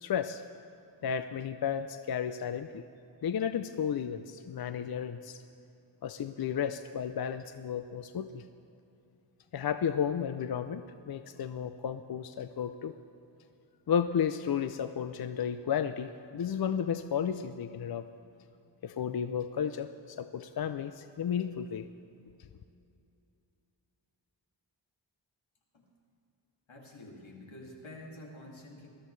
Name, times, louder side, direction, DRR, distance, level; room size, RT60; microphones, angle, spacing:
voice 1, 0.0-0.4 1.0-2.8 3.2-5.4 6.0-8.4 9.5-12.9 13.9-18.0 18.8-21.9, left 8 dB, 55° left, 10 dB, 0.5 m, -33 dB
voice 2, 26.7-28.9, left 1 dB, 85° left, -2 dB, 2.4 m, -48 dB
20.5 x 13.5 x 3.2 m, 2.7 s
wide cardioid pair, 85°, 45 cm